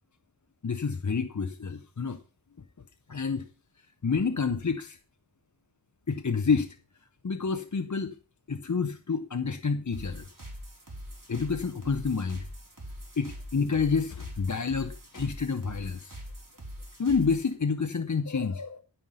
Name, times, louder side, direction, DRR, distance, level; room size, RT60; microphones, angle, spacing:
voice 1, 0.6-2.2 3.1-3.5 4.0-5.0 6.1-6.8 7.2-8.1 8.5-10.3 11.3-12.5 13.2-16.2 17.0-18.8, left 5 dB, 40° left, 9 dB, 0.7 m, -28 dB
sound 1, 9.9-17.5, equal, 40° right, 3.4 m, -43 dB
14.5 x 5.6 x 5.5 m, 0.36 s
wide cardioid pair, 45°, 46 cm